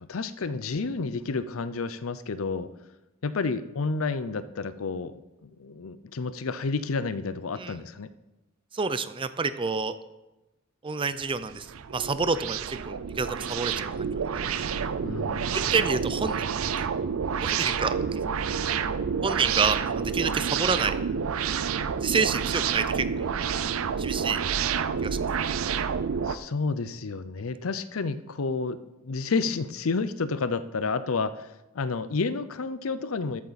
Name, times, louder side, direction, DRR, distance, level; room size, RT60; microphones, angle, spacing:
voice 1, 0.0-2.7 3.2-8.1 15.0-15.7 26.2-33.4, left 4 dB, 80° left, 13 dB, 0.6 m, -30 dB
voice 2, 8.7-9.9 10.8-14.8 15.5-16.4 17.4-18.2 19.2-20.9 22.0-23.3 24.0-24.4 25.0-25.2, right 4 dB, 25° right, 12 dB, 0.5 m, -28 dB
sound 1, 11.2-26.3, right 7 dB, 80° right, 0.5 m, -29 dB
13.5 x 8.7 x 4.1 m, 1.0 s
head